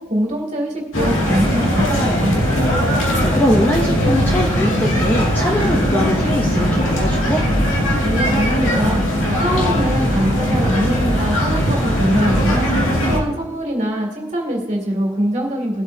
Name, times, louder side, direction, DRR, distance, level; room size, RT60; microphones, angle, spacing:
voice 1, 0.1-2.3 8.0-9.0 9.4-15.8, equal, 35° right, -1 dB, 2.7 m, -23 dB
sound 1, 0.9-13.2, equal, 65° left, 2.4 m, -19 dB
voice 2, 2.8-7.4, equal, 10° left, -1 dB, 0.7 m, -21 dB
19.5 x 8.2 x 2.8 m, 1.1 s
head